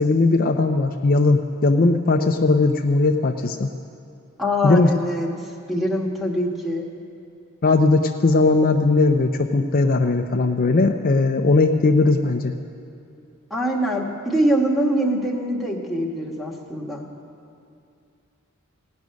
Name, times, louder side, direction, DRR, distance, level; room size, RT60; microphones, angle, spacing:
voice 1, 0.0-3.7 4.6-4.9 7.6-12.5, left 3 dB, 45° left, 5 dB, 0.5 m, -18 dB
voice 2, 4.4-5.3 5.7-6.8 13.5-17.1, equal, ahead, -3 dB, 1.4 m, -23 dB
16.5 x 6.3 x 9.4 m, 2.6 s
head